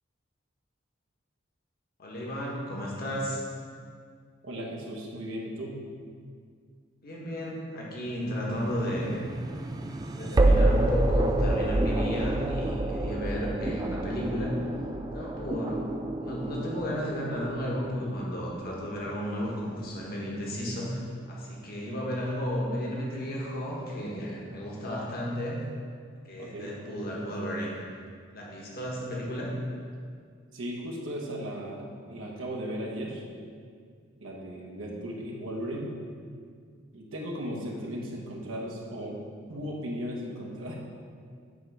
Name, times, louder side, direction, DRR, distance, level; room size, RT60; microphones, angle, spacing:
voice 1, 2.0-3.4 7.0-9.2 10.2-14.6 15.1-15.9 16.2-25.6 26.2-27.7 28.3-29.5, equal, 50° left, -4 dB, 1.3 m, -33 dB
voice 2, 4.4-5.8 26.4-26.7 30.5-33.2 34.2-35.9 36.9-39.2 39.5-40.8, equal, 80° right, -2 dB, 1.1 m, -36 dB
sound 1, 8.5-19.6, right 1 dB, 20° right, 0.3 m, -28 dB
8.5 x 3.4 x 4.7 m, 2.1 s
head